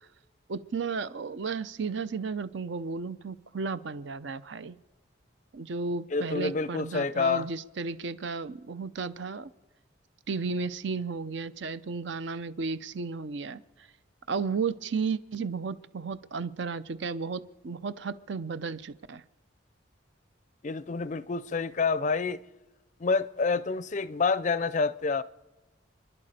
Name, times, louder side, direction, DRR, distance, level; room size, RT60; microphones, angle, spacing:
voice 1, 0.5-4.8 5.5-9.5 10.3-13.6 14.3-19.2, right 4 dB, 65° right, 0.6 m, -33 dB
voice 2, 6.1-7.5 20.6-22.4 23.0-25.2, left 4 dB, 40° left, 0.4 m, -28 dB
30.0 x 11.0 x 4.3 m
head